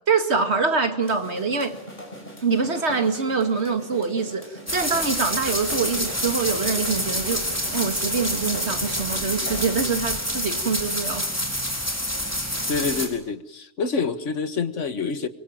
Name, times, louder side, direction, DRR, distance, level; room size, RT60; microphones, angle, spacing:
voice 1, 0.1-1.8 2.4-7.5 7.7-11.3, right 5 dB, 65° right, 6 dB, 2.4 m, -24 dB
sound 1, 1.0-9.9, equal, 40° left, 5.9 m, -41 dB
sound 2, 4.7-13.1, equal, 10° left, 4.6 m, -27 dB
voice 2, 12.7-15.3, left 4 dB, 90° left, 10 dB, 1.8 m, -27 dB
24.5 x 24.0 x 8.8 m, 0.81 s
omnidirectional pair, 1.2 m